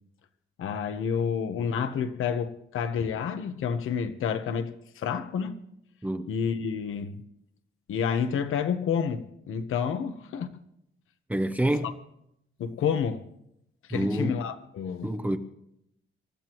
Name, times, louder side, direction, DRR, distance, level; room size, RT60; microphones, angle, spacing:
voice 1, 0.6-5.6 6.3-7.2 7.9-10.5 11.8-11.9 12.6-13.2 13.9-15.1, left 7 dB, 75° left, 1.1 m, -29 dB
voice 2, 11.3-11.9 13.9-14.4 15.0-15.4, right 1 dB, 10° right, 0.7 m, -27 dB
27.0 x 14.0 x 3.1 m
wide cardioid pair, 180°, 21 cm